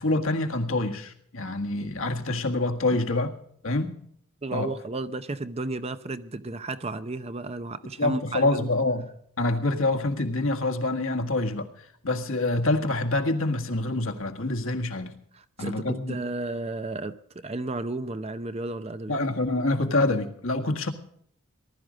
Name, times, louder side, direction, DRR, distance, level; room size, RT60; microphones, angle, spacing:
voice 1, 0.0-3.3 3.6-4.0 4.5-4.7 8.0-9.1 9.4-11.7 12.0-15.1 15.6-16.2 19.1-20.9, left 2 dB, 60° left, 1.7 m, -26 dB
voice 2, 4.4-8.7 15.3-19.2, right 2 dB, 25° right, 0.6 m, -33 dB
19.0 x 12.5 x 5.1 m
head